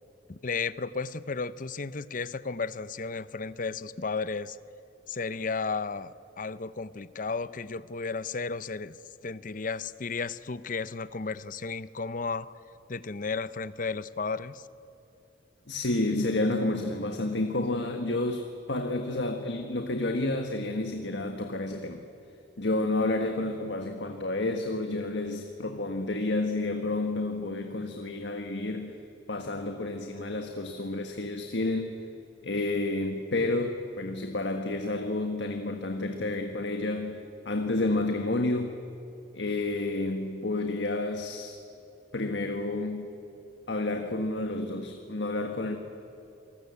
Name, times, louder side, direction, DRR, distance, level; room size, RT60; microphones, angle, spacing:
voice 1, 0.3-4.6 5.1-9.0 9.2-12.5 12.9-14.6, left 4 dB, 50° left, 15 dB, 0.7 m, -33 dB
voice 2, 15.7-22.0 22.6-29.0 29.3-31.9 32.4-38.8 39.3-41.5 42.1-43.1 43.7-45.8, left 2 dB, 80° left, 5 dB, 1.5 m, -30 dB
27.5 x 19.5 x 8.4 m, 2.9 s
head